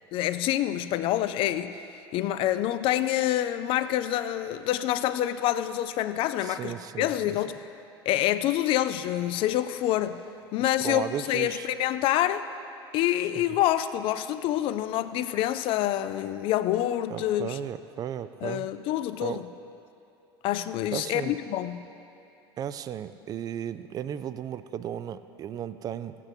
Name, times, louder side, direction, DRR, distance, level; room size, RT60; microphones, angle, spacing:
voice 1, 0.1-1.8 2.1-7.6 8.1-10.2 10.5-12.4 12.9-17.6 18.4-19.4 20.4-21.9, left 13 dB, 45° left, 12 dB, 0.4 m, -27 dB
voice 2, 6.4-7.4 10.6-11.7 13.4-13.5 17.1-18.7 19.2-19.4 20.9-21.4 22.6-26.2, right 9 dB, 30° right, 13 dB, 0.4 m, -35 dB
16.5 x 8.3 x 2.7 m, 2.7 s
figure-of-eight pair, 70°, 13 cm